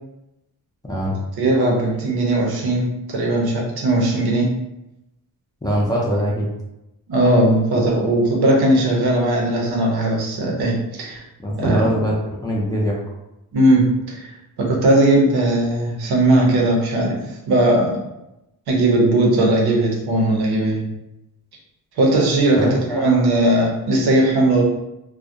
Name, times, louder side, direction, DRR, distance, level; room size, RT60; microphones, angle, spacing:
voice 1, 1.4-4.5 7.1-11.2 11.6-12.1 13.5-14.3 14.6-17.2 17.5-18.0 18.7-20.8 22.0-24.6, right 1 dB, 85° right, -1 dB, 0.7 m, -18 dB
voice 2, 5.6-6.5 11.4-13.0 22.5-23.2, equal, 10° left, -5 dB, 0.4 m, -22 dB
2.3 x 2.1 x 2.6 m, 0.91 s
wide cardioid pair, 135°, 37 cm